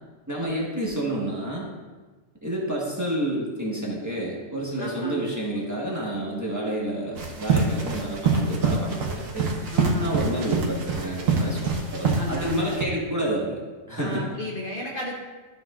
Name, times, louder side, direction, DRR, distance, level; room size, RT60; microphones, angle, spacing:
voice 1, 0.3-1.7 2.4-9.5 10.0-13.6 13.9-14.3, right 1 dB, 15° right, -4 dB, 1.3 m, -29 dB
voice 2, 4.8-5.3 9.7-10.2 12.2-12.7 14.0-15.1, left 1 dB, 45° left, -2 dB, 1.0 m, -33 dB
sound 1, 7.1-12.8, right 4 dB, 75° right, 1.4 m, -25 dB
12.0 x 6.0 x 2.4 m, 1.3 s
omnidirectional pair, 1.4 m